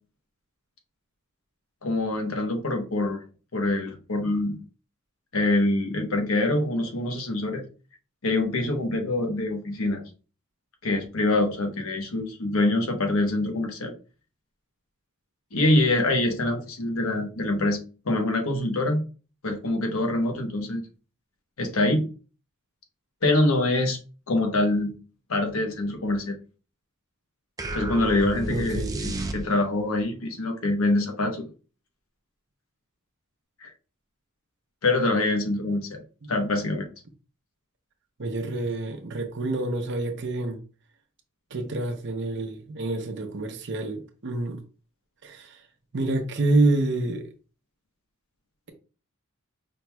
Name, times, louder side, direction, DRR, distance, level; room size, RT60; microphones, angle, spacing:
voice 1, 1.8-3.2 3.5-4.6 5.3-7.6 8.2-10.0 10.8-13.9 15.5-19.0 19.4-20.8 21.6-22.1 23.2-24.0 24.3-24.9 25.3-26.4 27.7-31.5 33.6-33.7 34.8-36.0 36.3-36.9, left 2 dB, 70° left, 1.0 m, -25 dB
sound 1, 27.6-29.9, right 1 dB, 15° right, 0.4 m, -32 dB
voice 2, 28.5-29.0 38.2-40.6 41.5-44.6 45.2-45.6 45.9-47.3, right 2 dB, 55° right, 0.8 m, -27 dB
5.1 x 3.0 x 2.2 m
head